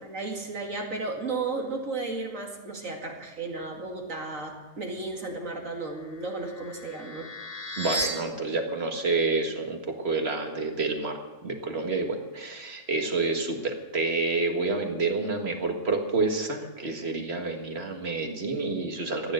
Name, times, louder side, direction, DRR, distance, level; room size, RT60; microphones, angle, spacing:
voice 1, 0.0-7.3, right 3 dB, 85° right, 1 dB, 2.8 m, -34 dB
sound 1, 5.9-8.1, right 1 dB, 30° right, 3.1 m, -35 dB
voice 2, 7.8-11.2 11.4-19.3, right 3 dB, 50° right, 3 dB, 2.0 m, -28 dB
15.5 x 10.0 x 7.7 m, 1.2 s
omnidirectional pair, 1.3 m